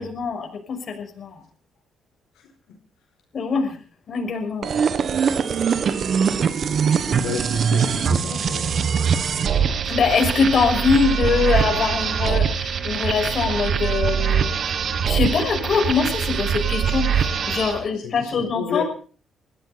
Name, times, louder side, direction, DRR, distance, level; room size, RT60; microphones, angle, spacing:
voice 1, 0.0-1.4 3.3-3.8 4.1-4.7 9.9-14.5 15.0-18.8, left 5 dB, 50° left, 3 dB, 5.9 m, -23 dB
sound 1, 4.6-17.8, right 7 dB, 55° right, 1.6 m, -22 dB
voice 2, 7.1-9.7 17.9-18.8, left 8 dB, 90° left, 2 dB, 4.5 m, -33 dB
21.5 x 15.0 x 4.3 m, 0.41 s
cardioid pair, 90°, 0 cm